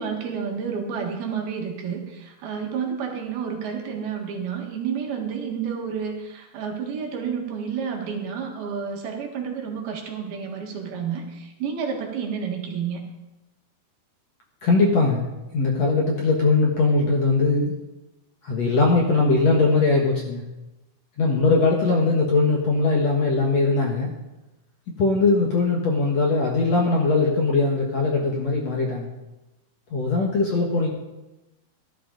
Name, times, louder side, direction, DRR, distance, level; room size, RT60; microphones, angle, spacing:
voice 1, 0.0-13.0, right 6 dB, 70° right, 1 dB, 3.5 m, -30 dB
voice 2, 14.6-15.3 15.5-17.7 18.4-20.4 21.2-24.1 25.0-29.1 29.9-30.9, left 3 dB, 55° left, 0 dB, 2.0 m, -20 dB
16.5 x 12.0 x 3.9 m, 1.0 s
omnidirectional pair, 4.7 m